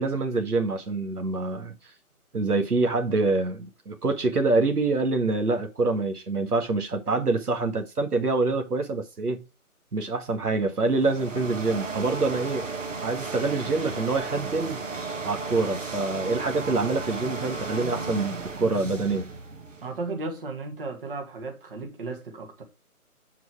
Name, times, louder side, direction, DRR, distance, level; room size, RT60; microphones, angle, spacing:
voice 1, 0.0-1.8 2.3-9.4 9.9-12.7 13.0-14.8 15.2-19.3, right 3 dB, 85° right, 1.9 m, -26 dB
sound 1, 10.8-20.0, right 4 dB, 55° right, 1.8 m, -34 dB
voice 2, 19.8-22.6, right 3 dB, 35° right, 2.0 m, -35 dB
8.3 x 4.7 x 4.8 m
figure-of-eight pair, 160°, 44 cm